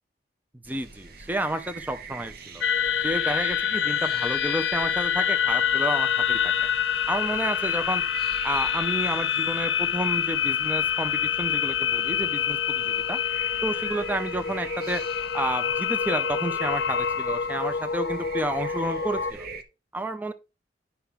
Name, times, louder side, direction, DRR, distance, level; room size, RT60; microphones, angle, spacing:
voice 1, 0.6-2.6 3.0-6.7 7.1-8.0 8.4-13.2 13.6-15.0 15.3-19.5 19.9-20.3, right 1 dB, 10° right, 0.5 m, -30 dB
sound 1, 0.6-19.6, right 4 dB, 55° right, 0.9 m, -44 dB
sound 2, 2.6-19.3, left 8 dB, 75° left, 0.6 m, -26 dB
8.3 x 5.7 x 3.6 m
head